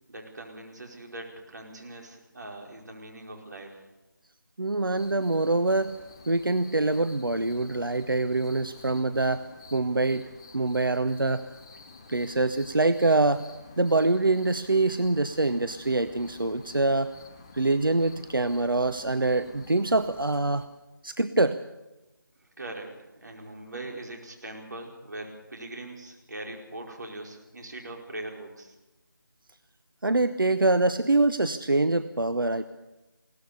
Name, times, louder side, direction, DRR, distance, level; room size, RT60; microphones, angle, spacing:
voice 1, 0.1-3.8 22.4-28.7, right 2 dB, 55° right, 0 dB, 4.8 m, -41 dB
voice 2, 4.6-6.0 6.3-9.4 9.7-10.2 10.5-11.4 12.1-13.4 13.8-17.1 17.5-20.7 21.0-21.6 30.0-32.6, right 2 dB, 90° right, 11 dB, 0.8 m, -24 dB
sound 1, 4.9-20.7, left 4 dB, 15° left, 0.8 m, -50 dB
21.0 x 18.0 x 7.0 m, 1.0 s
figure-of-eight pair, 165°, 11 cm